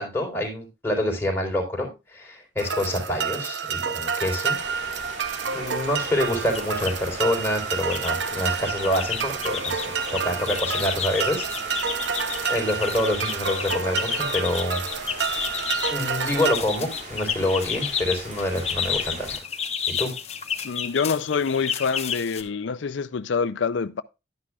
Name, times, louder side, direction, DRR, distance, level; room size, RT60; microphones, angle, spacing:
voice 1, 0.0-4.6 5.5-11.9 12.5-14.8 15.9-19.3 20.0-20.1, left 1 dB, 15° left, 3.8 m, -27 dB
sound 1, 2.6-16.5, right 6 dB, 75° right, 0.8 m, -29 dB
sound 2, 4.6-19.4, right 1 dB, 40° right, 2.7 m, -39 dB
sound 3, 6.5-7.0 7.5-8.1 8.4-22.4, left 7 dB, 35° left, 1.1 m, -31 dB
voice 2, 20.6-24.0, left 5 dB, 85° left, 0.5 m, -26 dB
11.5 x 10.0 x 2.4 m
head